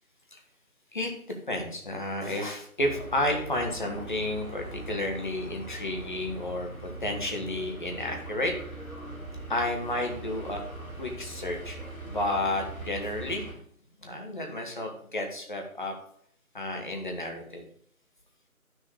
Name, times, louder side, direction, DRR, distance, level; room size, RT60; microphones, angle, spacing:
voice 1, 1.5-8.5 9.5-10.6 11.0-11.8 12.0-13.5 14.0-15.9 16.5-17.6, left 1 dB, 35° left, 2 dB, 1.4 m, -31 dB
sound 1, 2.8-13.5, right 1 dB, 70° left, 4.3 m, -41 dB
9.7 x 6.5 x 4.9 m, 0.63 s
figure-of-eight pair, 160°, 44 cm